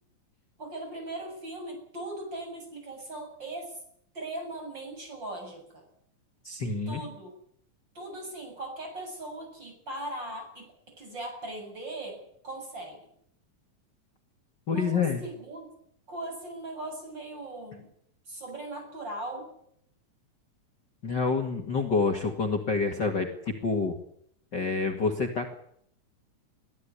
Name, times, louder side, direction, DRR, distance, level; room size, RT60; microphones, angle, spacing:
voice 1, 0.6-3.8 4.1-5.8 6.9-7.3 7.9-13.1 14.7-15.7 16.1-17.9 18.3-19.5, right 1 dB, 35° right, 3 dB, 8.4 m, -39 dB
voice 2, 6.4-7.0 14.7-15.2 21.0-24.0 24.5-25.5, left 4 dB, 40° left, 3 dB, 2.4 m, -28 dB
23.5 x 15.0 x 9.9 m, 0.70 s
omnidirectional pair, 3.6 m